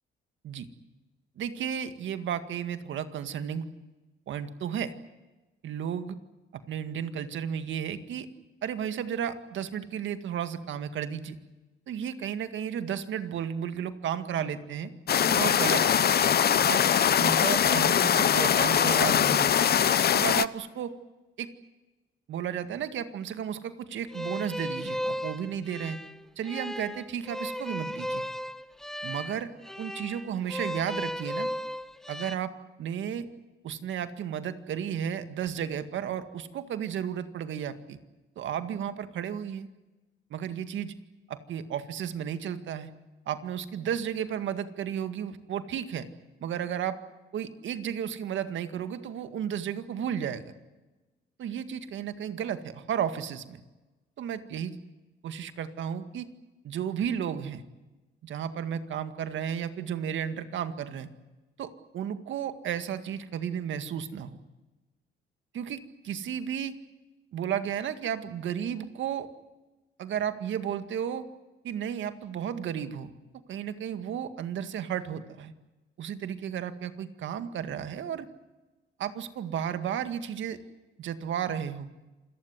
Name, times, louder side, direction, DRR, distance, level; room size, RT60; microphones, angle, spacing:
voice 1, 1.4-3.7 4.3-4.9 5.6-6.2 6.5-8.3 8.6-11.4 11.9-14.9 15.3-16.0 16.7-16.8 17.2-19.5 20.0-20.9 21.4-21.5 22.3-26.0 26.4-28.2 29.0-29.5 29.8-31.5 32.1-32.5 32.8-33.3 33.6-38.0 38.4-39.7 40.3-40.9 41.3-42.9 43.3-46.1 46.4-47.0 47.3-50.5 51.4-53.6 54.2-54.8 55.2-56.3 56.6-57.6 58.2-61.1 61.6-64.4 65.5-66.7 67.3-69.3 70.0-71.2 71.6-73.1 73.5-75.5 76.0-78.3 79.0-80.6 81.0-81.9, right 8 dB, 75° right, 10 dB, 1.9 m, -33 dB
sound 1, 15.1-20.5, left 9 dB, 55° left, 0.8 m, -22 dB
Wind instrument woodwind instrument, 15.3-20.0, right 5 dB, 55° right, 1.3 m, -37 dB
sound 2, 24.1-32.3, equal, ahead, 1.0 m, -35 dB
27.5 x 18.5 x 9.6 m, 1.1 s
cardioid pair, 90°, 20 cm